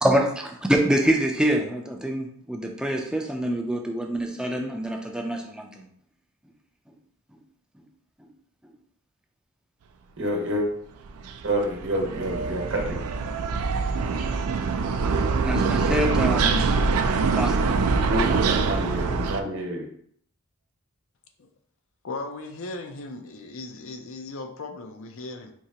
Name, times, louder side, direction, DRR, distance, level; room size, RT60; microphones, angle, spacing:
voice 1, 0.0-5.9 15.4-16.7 17.3-17.6, right 1 dB, 5° right, 2 dB, 0.4 m, -25 dB
voice 2, 10.2-10.6 11.4-13.0 18.0-19.9, right 1 dB, 55° right, 0 dB, 1.0 m, -28 dB
sound 1, 11.0-19.4, right 4 dB, 75° right, 0.4 m, -24 dB
voice 3, 22.0-25.5, left 2 dB, 60° left, 5 dB, 0.5 m, -37 dB
4.5 x 2.8 x 2.8 m, 0.65 s
head